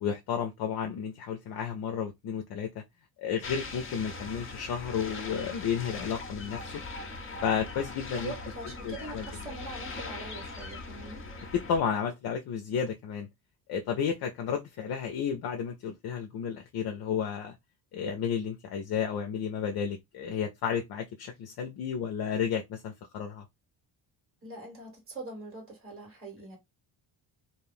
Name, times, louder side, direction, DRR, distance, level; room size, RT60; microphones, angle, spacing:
voice 1, 0.0-2.8 3.2-6.8 7.4-8.3 8.8-9.2 11.5-13.3 13.7-17.5 17.9-23.5, left 7 dB, 55° left, 0.6 m, -32 dB
sound 1, 3.4-11.8, left 3 dB, 30° left, 0.8 m, -41 dB
voice 2, 8.1-11.2 24.4-26.6, right 2 dB, 30° right, 1.6 m, -43 dB
2.6 x 2.3 x 3.4 m
cardioid pair, 110°, 45 cm